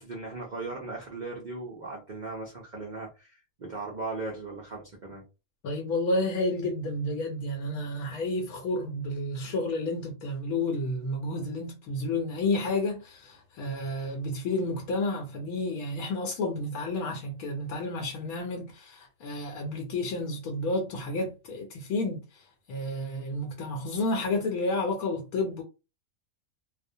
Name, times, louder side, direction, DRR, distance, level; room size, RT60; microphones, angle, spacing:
voice 1, 0.0-5.2, right 3 dB, 75° right, 0.4 m, -38 dB
voice 2, 5.6-25.6, left 2 dB, 80° left, 1.0 m, -31 dB
2.3 x 2.1 x 2.6 m
omnidirectional pair, 1.5 m